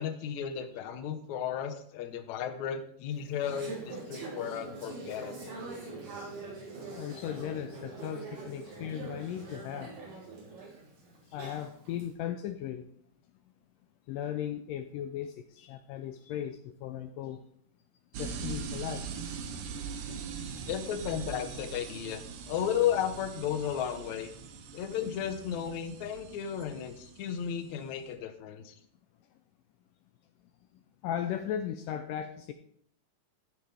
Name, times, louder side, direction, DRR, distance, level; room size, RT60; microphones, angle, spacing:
voice 1, 0.0-5.5 20.1-20.2 20.7-22.2 22.5-24.3 24.7-28.7, left 9 dB, 70° left, 6 dB, 1.9 m, -34 dB
Conversation / Chatter, 3.1-12.0, right 3 dB, 85° right, 5.6 m, -43 dB
voice 2, 6.9-10.0 10.5-10.6 11.2-12.9 14.1-17.4 18.1-19.1 30.7-32.5, left 10 dB, 85° left, 8 dB, 1.9 m, -37 dB
sound 1, 18.1-28.1, right 6 dB, 65° right, 2.2 m, -42 dB
15.0 x 7.9 x 3.5 m, 0.66 s
omnidirectional pair, 4.5 m